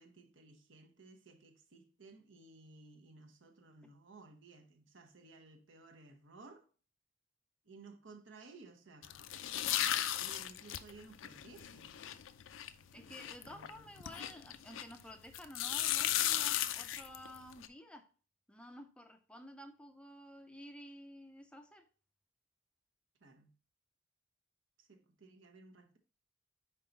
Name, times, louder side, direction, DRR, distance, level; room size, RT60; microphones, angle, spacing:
voice 1, 0.0-6.7 7.6-9.1 9.7-12.0 13.1-14.3 23.2-23.6 24.8-26.0, right 3 dB, 75° right, 1.0 m, -57 dB
sound 1, 9.0-15.0 15.3-17.7, left 12 dB, 80° left, 0.4 m, -36 dB
voice 2, 12.9-18.1 18.5-21.9, equal, 5° left, 0.4 m, -52 dB
5.6 x 4.6 x 3.9 m
head